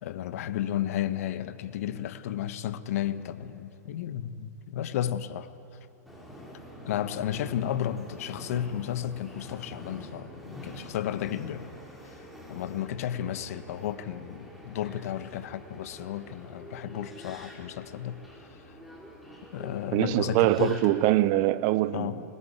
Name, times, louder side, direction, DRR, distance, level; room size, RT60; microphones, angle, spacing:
voice 1, 0.0-5.5 6.8-11.7 12.0-12.2 12.5-18.2 18.5-18.6 19.5-20.8 21.9-22.2, left 11 dB, 55° left, 1.2 m, -33 dB
Subway metro underground, 6.1-21.3, equal, ahead, 4.9 m, -46 dB
voice 2, 19.9-22.2, right 16 dB, 40° right, 0.7 m, -23 dB
20.5 x 19.5 x 8.5 m
figure-of-eight pair, 105°, 9 cm